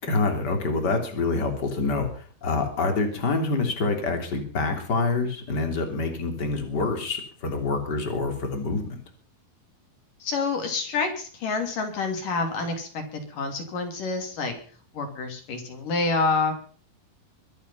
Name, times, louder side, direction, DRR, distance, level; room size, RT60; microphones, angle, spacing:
voice 1, 0.0-9.0, left 3 dB, 30° left, 5 dB, 3.3 m, -26 dB
voice 2, 10.2-14.5 14.9-16.5, left 4 dB, 60° left, 4 dB, 4.4 m, -28 dB
23.5 x 9.1 x 5.6 m, 0.42 s
omnidirectional pair, 4.4 m